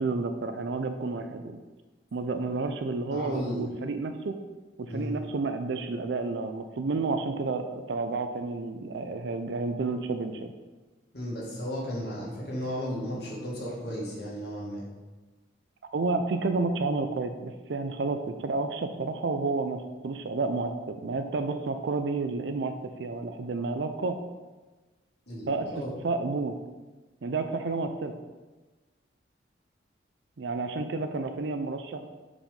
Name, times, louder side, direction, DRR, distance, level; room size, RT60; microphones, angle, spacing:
voice 1, 0.0-1.6 2.1-4.4 4.8-10.5 15.9-22.7 23.0-24.2 25.5-25.7 26.0-26.5 27.2-28.1 30.4-32.0, right 3 dB, 70° right, 7 dB, 0.5 m, -30 dB
voice 2, 3.1-3.6 4.9-5.1 11.1-14.8 25.3-25.9, equal, 60° left, -5 dB, 2.1 m, -34 dB
5.6 x 5.0 x 5.2 m, 1.2 s
head